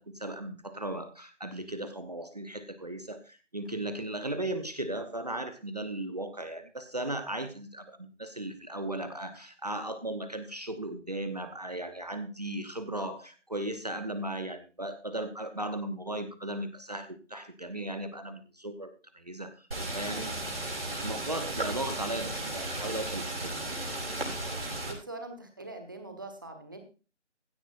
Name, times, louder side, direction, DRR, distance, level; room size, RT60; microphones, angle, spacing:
voice 1, 0.0-19.7 19.9-20.3 21.0-23.7, right 1 dB, 35° right, 9 dB, 0.9 m, -36 dB
sound 1, 19.7-24.9, right 2 dB, 55° right, 5.7 m, -35 dB
voice 2, 24.8-26.8, right 2 dB, 15° right, 6 dB, 1.3 m, -43 dB
16.0 x 13.0 x 2.6 m, 0.33 s
figure-of-eight pair, 165°, 36 cm